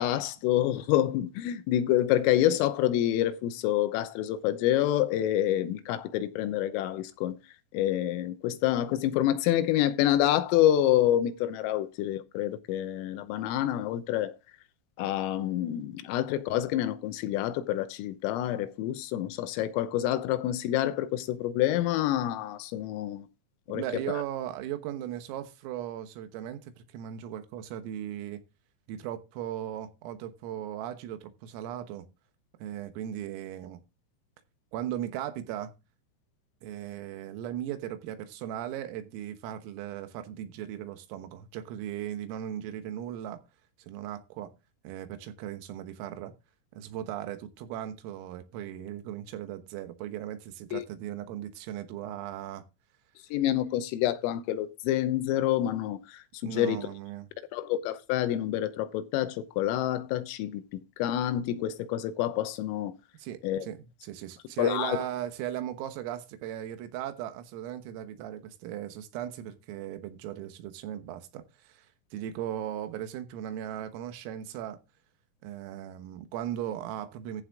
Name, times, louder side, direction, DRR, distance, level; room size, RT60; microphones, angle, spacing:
voice 1, 0.0-7.4 7.7-14.3 15.0-23.3 23.7-23.8 50.7-50.8 53.3-56.8 57.5-60.6 61.0-62.9 63.4-63.7 64.6-65.0, left 12 dB, 85° left, 3.6 m, -27 dB
voice 2, 23.7-28.4 28.9-32.1 32.6-33.8 34.7-35.7 36.6-43.4 43.8-44.5 44.9-46.3 46.8-52.6 56.4-57.3 63.2-74.8 75.4-77.4, right 11 dB, 90° right, 3.9 m, -37 dB
14.5 x 6.4 x 3.6 m
omnidirectional pair, 5.8 m